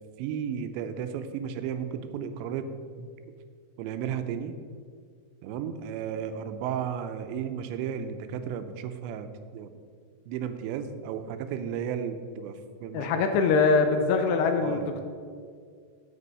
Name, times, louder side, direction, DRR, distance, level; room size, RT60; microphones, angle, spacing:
voice 1, 0.2-2.7 3.0-3.1 3.8-4.6 5.4-9.3 9.5-9.7 10.3-13.3 14.6-14.9, right 8 dB, 85° right, 9 dB, 2.9 m, -34 dB
voice 2, 12.9-15.0, left 4 dB, 85° left, 6 dB, 2.6 m, -23 dB
8.7 x 8.2 x 5.4 m, 2.1 s
omnidirectional pair, 5.1 m